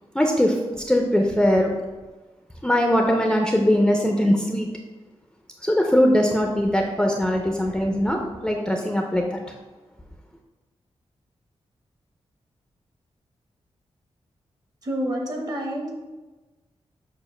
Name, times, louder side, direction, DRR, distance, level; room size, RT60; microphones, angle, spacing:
voice 1, 0.1-0.6 0.9-1.7 2.6-4.7 5.6-9.4, equal, 5° left, 1 dB, 0.5 m, -21 dB
voice 2, 14.8-15.9, equal, 35° right, 1 dB, 0.9 m, -28 dB
7.0 x 2.5 x 5.5 m, 1.2 s
wide cardioid pair, 165°, 11 cm